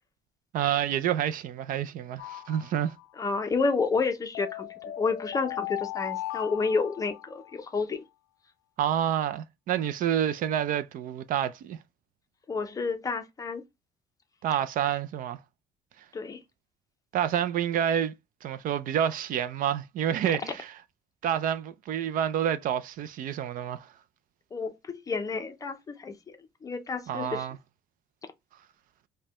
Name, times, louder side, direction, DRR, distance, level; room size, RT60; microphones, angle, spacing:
voice 1, 0.5-2.9 8.8-11.8 14.4-15.4 17.1-18.1 18.4-20.8 21.2-23.9 27.1-27.6, right 10 dB, 55° right, 0.4 m, -28 dB
sound 1, 2.2-3.2 4.3-7.6, left 16 dB, 75° left, 0.4 m, -38 dB
voice 2, 3.2-4.7 5.0-8.0 12.5-13.6 16.1-16.4 24.5-26.4 26.6-27.5, left 4 dB, 20° left, 0.5 m, -30 dB
5.2 x 2.2 x 2.8 m
cardioid pair, 175°, 17 cm